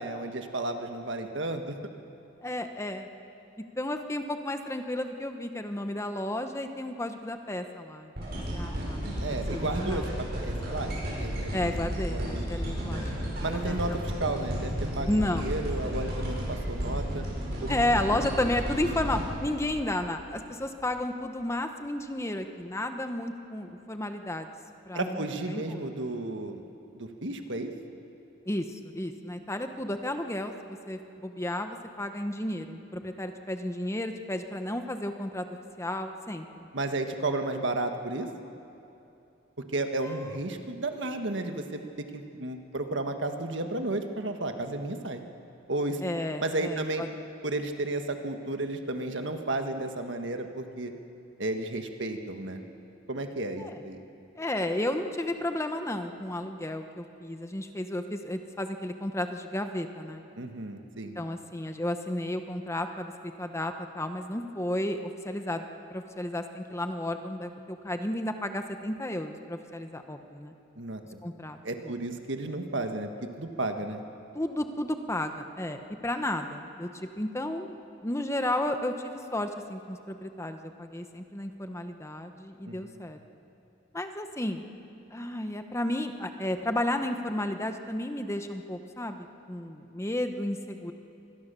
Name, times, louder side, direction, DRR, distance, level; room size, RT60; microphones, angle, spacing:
voice 1, 0.0-1.8 9.2-10.0 10.4-10.9 11.2-11.5 12.1-12.5 13.4-17.2 17.6-17.9 24.9-26.6 26.9-27.7 36.7-38.3 39.7-45.2 45.7-46.0 46.4-47.0 47.4-50.9 51.4-52.6 53.1-54.0 60.4-61.2 70.8-71.2 71.6-73.1 73.4-74.0 82.7-83.0, right 2 dB, 75° right, 6 dB, 1.6 m, -33 dB
voice 2, 2.4-3.1 3.8-10.1 11.5-14.0 15.1-15.5 17.7-24.5 24.9-25.8 28.5-35.5 35.8-36.7 40.0-40.1 46.0-47.1 53.6-53.8 54.4-60.2 61.2-65.6 65.9-70.5 71.2-71.6 71.8-71.9 74.3-76.9 77.2-83.2 83.9-84.6 85.1-90.9, left 1 dB, 15° left, 7 dB, 1.0 m, -33 dB
sound 1, 8.2-20.4 20.9-21.0, equal, 60° right, 7.9 m, -33 dB
25.5 x 21.0 x 6.9 m, 2.8 s
head